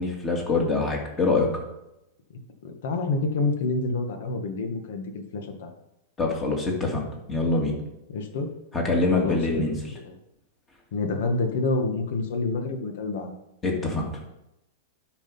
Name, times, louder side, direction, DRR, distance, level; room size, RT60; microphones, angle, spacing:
voice 1, 0.0-1.5 6.2-7.0 7.3-7.7 8.7-9.7 13.6-14.0, left 3 dB, 15° left, 0 dB, 2.4 m, -24 dB
voice 2, 2.6-5.7 8.1-8.5 9.1-9.8 10.0-10.1 10.9-13.3, left 3 dB, 65° left, 5 dB, 1.8 m, -28 dB
12.0 x 5.1 x 5.6 m, 0.88 s
supercardioid pair, 155°, 0 cm